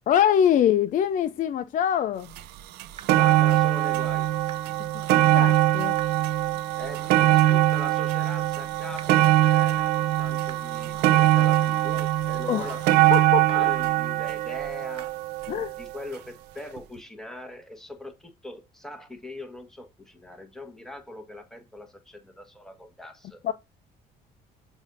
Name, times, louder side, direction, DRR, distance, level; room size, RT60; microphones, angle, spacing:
voice 1, 0.1-2.3 5.1-6.0 12.5-12.8 13.1-13.6 15.5-15.7 23.4-23.5, left 9 dB, 50° left, 0.4 m, -24 dB
sound 1, 2.4-2.5 2.8-16.0 16.8-16.9, right 14 dB, 90° right, 0.5 m, -22 dB
sound 2, 3.0-3.1 4.5-4.6 6.0-6.1 7.5-7.6 9.0-9.1 10.5-10.6 12.0-12.1 13.5-13.6 15.0-15.1, right 7 dB, 35° right, 0.6 m, -41 dB
voice 2, 3.1-4.3 6.8-13.0 13.5-15.2 15.8-23.4, left 1 dB, 5° left, 1.3 m, -41 dB
7.1 x 2.7 x 5.2 m
cardioid pair, 110°, 17 cm